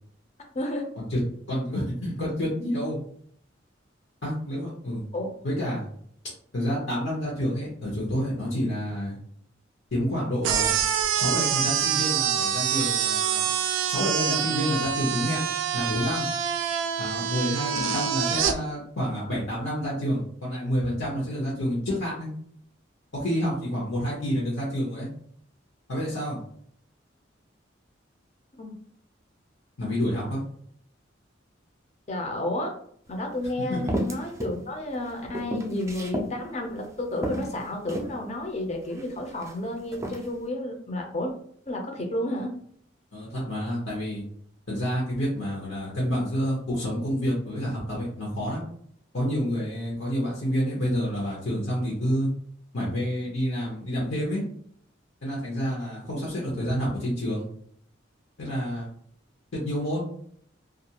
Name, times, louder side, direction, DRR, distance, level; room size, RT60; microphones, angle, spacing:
voice 1, 0.5-0.9 5.1-5.3 17.8-17.9 28.6-28.7 32.1-32.7 33.1-41.3 41.7-42.5, left 1 dB, 35° left, 2 dB, 0.5 m, -31 dB
voice 2, 1.5-3.0 4.2-5.0 5.4-5.9 6.5-9.2 9.9-10.7 11.1-13.5 13.9-15.4 15.7-16.2 17.0-22.3 23.1-25.1 25.9-26.4 29.8-30.4 33.7-33.8 43.1-44.2 44.7-48.6 49.1-52.3 52.7-54.4 55.2-57.4 58.4-58.9 59.5-60.1, equal, 75° left, -5 dB, 0.8 m, -28 dB
sound 1, 10.4-18.6, right 8 dB, 90° right, 0.3 m, -26 dB
sound 2, 33.1-33.2 33.9-34.6 34.9-36.3 36.8-36.9 37.2-38.2 38.9-39.5 39.9-40.3, right 1 dB, 15° right, 0.4 m, -32 dB
2.4 x 2.3 x 2.8 m, 0.63 s
head